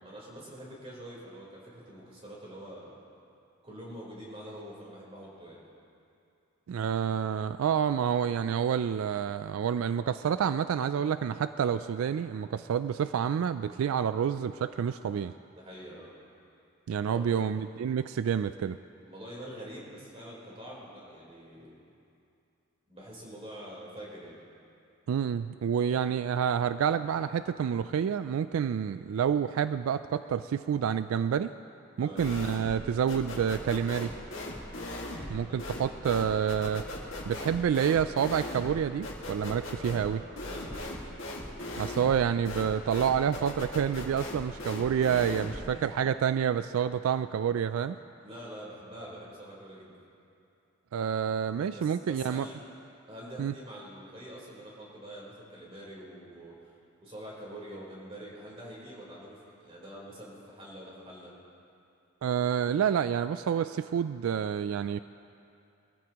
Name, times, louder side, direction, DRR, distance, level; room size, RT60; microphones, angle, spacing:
voice 1, 0.0-3.0 3.6-5.6 15.6-16.1 17.0-17.5 19.0-21.8 22.9-24.4 32.0-32.2 35.4-35.7 39.7-40.9 45.6-45.9 48.2-49.9 51.7-52.6 53.1-56.7 57.0-61.3, equal, 30° right, -5 dB, 3.9 m, -45 dB
voice 2, 6.7-15.3 16.9-18.8 25.1-31.5 32.0-34.1 35.3-36.8 37.3-40.2 41.8-48.0 50.9-52.5 53.4-53.5 62.2-65.0, right 8 dB, 80° right, 12 dB, 0.3 m, -28 dB
sound 1, 32.2-32.8 33.1-45.7, left 1 dB, 65° left, 2.0 m, -39 dB
22.0 x 14.0 x 3.0 m, 2.6 s
head